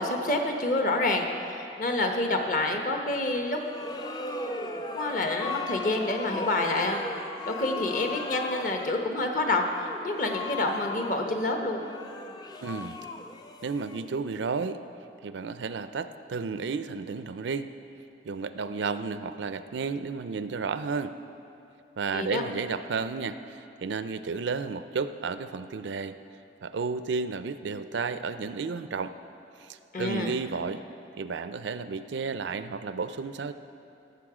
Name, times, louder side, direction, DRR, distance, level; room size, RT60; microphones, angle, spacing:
voice 1, 0.0-3.6 4.9-7.0 7.4-11.8 22.1-22.4 29.9-30.3, left 2 dB, 45° left, 3 dB, 1.0 m, -28 dB
sound 1, 3.4-14.4, left 3 dB, 20° left, 0.4 m, -37 dB
voice 2, 12.6-13.0 13.6-14.8 15.2-17.7 18.2-21.1 22.0-26.2 26.6-29.1 29.6-30.8 31.2-33.5, right 4 dB, 80° right, 11 dB, 0.4 m, -32 dB
17.0 x 6.8 x 4.9 m, 2.7 s
head